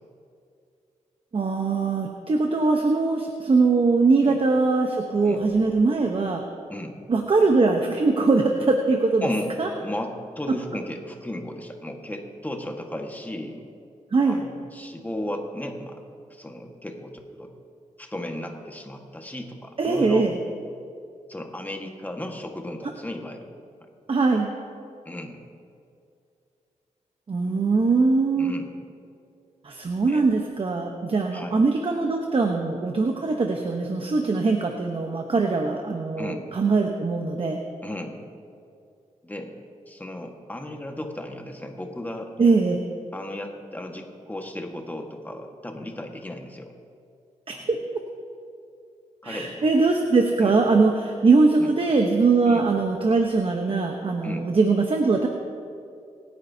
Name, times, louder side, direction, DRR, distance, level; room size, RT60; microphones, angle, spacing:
voice 1, 1.3-6.4 7.1-9.3 9.6-9.7 14.1-14.4 19.8-20.4 24.1-24.5 27.3-28.5 29.6-37.6 42.4-42.8 47.5-47.8 49.2-55.3, right 3 dB, 45° right, 3 dB, 1.0 m, -21 dB
voice 2, 9.2-9.5 9.8-13.6 14.2-16.0 16.3-17.5 18.0-20.3 21.3-23.5 23.8-23.9 25.0-25.4 28.3-28.7 30.1-30.2 31.3-31.6 36.2-36.5 37.8-38.2 39.2-39.5 39.9-42.5 43.1-46.7 47.5-47.7 49.2-49.6 50.4-50.5 51.6-51.7 52.4-52.6 54.2-54.5, left 1 dB, 15° left, 3 dB, 1.6 m, -35 dB
26.5 x 9.8 x 2.8 m, 2.4 s
cardioid pair, 75°, 13 cm